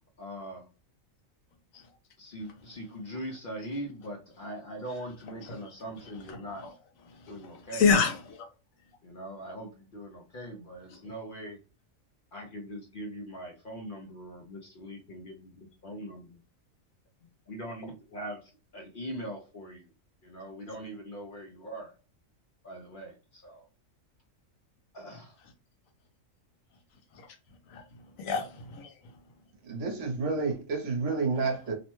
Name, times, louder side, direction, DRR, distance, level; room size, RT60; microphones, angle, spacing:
voice 1, 0.2-0.7 2.2-6.7 7.3-7.9 9.0-11.6 12.3-16.4 17.5-19.9 20.2-21.9 22.6-23.7 24.9-25.4, right 1 dB, 55° left, 0.6 m, -41 dB
voice 2, 7.1-8.5 27.1-27.3 27.7-29.1, left 5 dB, 80° left, 1.1 m, -29 dB
voice 3, 29.6-31.7, right 4 dB, 65° right, 1.1 m, -30 dB
2.9 x 2.1 x 2.9 m
omnidirectional pair, 1.4 m